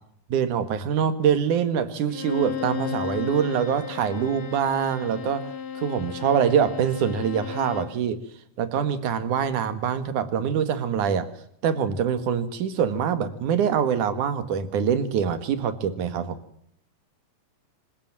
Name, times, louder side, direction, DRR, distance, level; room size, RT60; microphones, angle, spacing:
voice 1, 0.3-5.5 5.7-8.2 8.6-11.3 11.6-16.4, right 8 dB, 70° right, 12 dB, 3.1 m, -24 dB
Bowed string instrument, 2.1-8.0, left 8 dB, 60° left, 2.9 m, -34 dB
26.5 x 16.0 x 7.4 m, 0.70 s
omnidirectional pair, 3.7 m